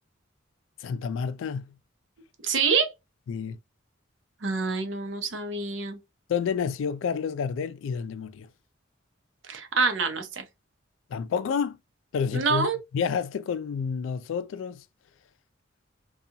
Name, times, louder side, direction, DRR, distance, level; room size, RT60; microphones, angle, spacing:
voice 1, 0.8-1.7 3.3-3.6 6.3-8.5 11.1-11.8 12.1-14.8, left 6 dB, 75° left, 0.3 m, -29 dB
voice 2, 2.4-2.9 4.4-6.0 9.5-10.4 12.3-12.8, right 4 dB, 70° right, 0.7 m, -26 dB
2.8 x 2.3 x 2.5 m
head